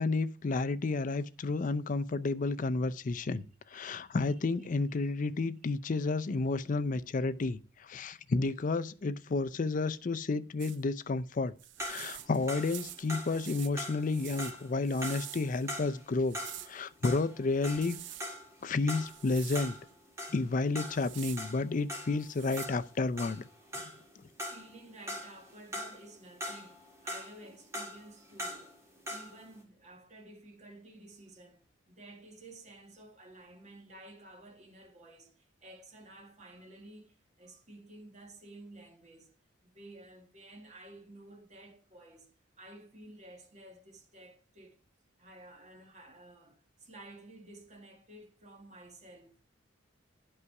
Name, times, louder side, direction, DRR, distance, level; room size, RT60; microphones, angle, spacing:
voice 1, 0.0-3.5 3.7-7.6 7.9-11.5 11.8-16.4 16.7-18.0 18.6-19.7 20.3-23.4, left 3 dB, 40° left, 0.4 m, -31 dB
voice 2, 3.7-4.7 24.5-28.7 29.1-39.3 39.6-42.3 42.6-44.8 45.2-49.3, right 1 dB, 35° right, 1.7 m, -53 dB
sound 1, 10.6-10.8 11.6-15.7 16.2-16.8 17.5-18.3 19.0-19.7 20.8-21.4 22.2-22.7, right 14 dB, 60° right, 0.4 m, -47 dB
sound 2, 11.8-16.8 17.0-24.1 24.4-26.1 26.4-29.4, equal, 15° right, 1.9 m, -42 dB
11.0 x 5.6 x 4.7 m
head